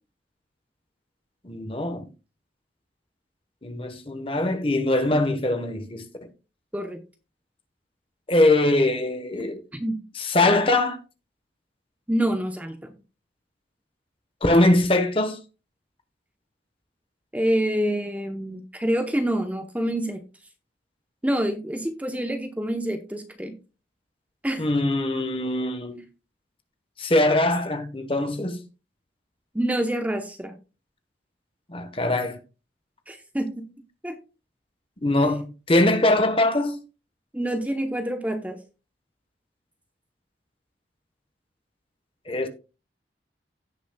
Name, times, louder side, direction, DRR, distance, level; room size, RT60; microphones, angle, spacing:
voice 1, 1.4-2.1 3.6-6.1 8.3-9.6 10.2-11.0 14.4-15.4 24.6-26.0 27.0-28.6 31.7-32.4 35.0-36.8 42.3-42.5, left 2 dB, 30° left, 1.1 m, -22 dB
voice 2, 9.7-10.0 12.1-13.0 17.3-20.2 21.2-23.6 24.4-24.6 29.5-30.6 33.1-33.7 34.0-34.2 37.3-38.6, right 1 dB, 10° right, 0.8 m, -27 dB
16.5 x 6.1 x 2.2 m
head